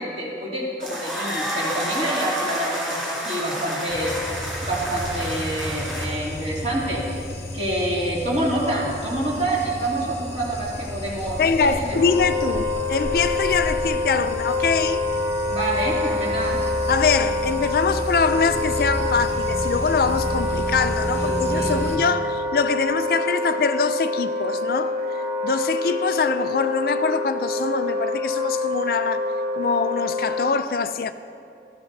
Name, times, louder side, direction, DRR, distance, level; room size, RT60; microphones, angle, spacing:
voice 1, 0.0-4.1 4.6-7.0 7.5-12.0 15.5-16.6 21.1-21.8, right 1 dB, 35° right, 2.7 m, -27 dB
sound 1, 0.8-6.0, equal, 5° right, 3.1 m, -29 dB
sound 2, 3.9-22.0, left 1 dB, 15° left, 1.3 m, -32 dB
voice 2, 11.4-15.0 16.9-29.3 29.5-31.1, left 5 dB, 55° left, 0.3 m, -23 dB
Wind instrument woodwind instrument, 11.9-30.5, left 2 dB, 65° right, 1.8 m, -26 dB
16.0 x 14.0 x 2.7 m
head